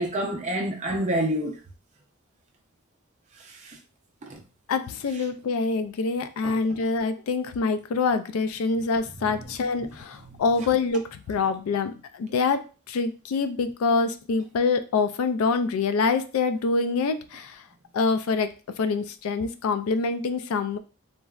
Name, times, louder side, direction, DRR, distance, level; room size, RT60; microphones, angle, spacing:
voice 1, 0.0-1.6 3.4-3.8 4.2-4.4 6.4-6.8 9.2-9.5 10.2-10.4, right 1 dB, 35° right, 0.5 m, -29 dB
voice 2, 4.7-17.6 17.9-18.5 18.8-20.8, left 4 dB, 75° left, 0.3 m, -25 dB
3.8 x 2.1 x 2.3 m
head